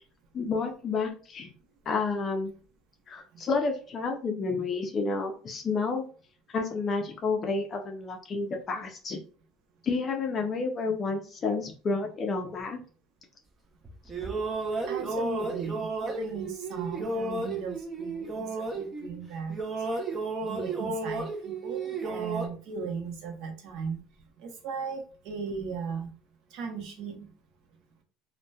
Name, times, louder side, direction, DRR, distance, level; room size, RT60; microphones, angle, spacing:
voice 1, 0.3-1.5 1.9-2.5 3.1-6.0 6.5-9.2 9.8-12.8, left 4 dB, 35° left, 3 dB, 0.4 m, -30 dB
sound 1, 13.8-19.2 19.5-22.5, right 3 dB, 25° right, 0.5 m, -33 dB
voice 2, 14.9-19.6 20.4-24.0 24.4-26.1 26.5-27.3, right 5 dB, 60° right, 3 dB, 0.7 m, -37 dB
2.6 x 2.1 x 2.2 m, 0.39 s
cardioid pair, 130°, 0 cm